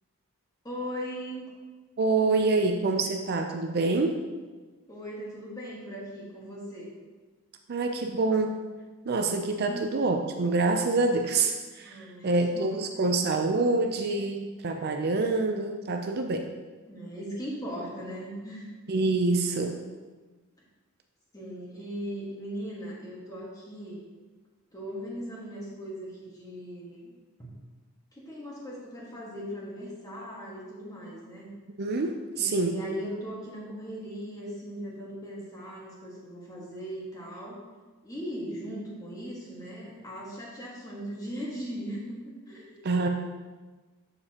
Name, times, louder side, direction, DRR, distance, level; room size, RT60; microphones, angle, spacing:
voice 1, 0.6-1.5 4.9-6.9 9.7-9.9 11.8-12.7 16.9-18.7 21.3-24.0 24.7-27.1 27.4-27.6 28.1-31.5 32.3-37.6 38.0-42.2 42.5-43.1, equal, 15° left, -5 dB, 1.6 m, -39 dB
voice 2, 2.0-4.2 7.7-8.6 9.1-12.0 12.2-16.5 18.9-19.8 31.8-32.8 42.8-43.1, right 3 dB, 45° right, 4 dB, 0.4 m, -26 dB
6.9 x 6.8 x 2.9 m, 1.3 s
head